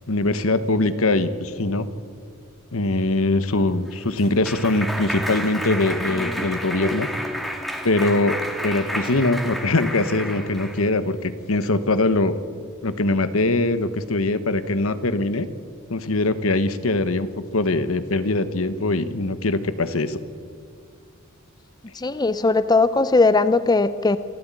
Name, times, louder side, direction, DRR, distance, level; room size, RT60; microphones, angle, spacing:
voice 1, 0.1-1.9 2.7-7.1 7.8-12.4 12.8-15.5 15.9-20.2, left 2 dB, 75° left, 12 dB, 1.2 m, -22 dB
Clapping, 3.6-10.9, equal, ahead, 2.0 m, -30 dB
voice 2, 21.9-24.2, left 3 dB, 20° left, 13 dB, 0.6 m, -18 dB
27.0 x 13.5 x 8.9 m, 2.3 s
head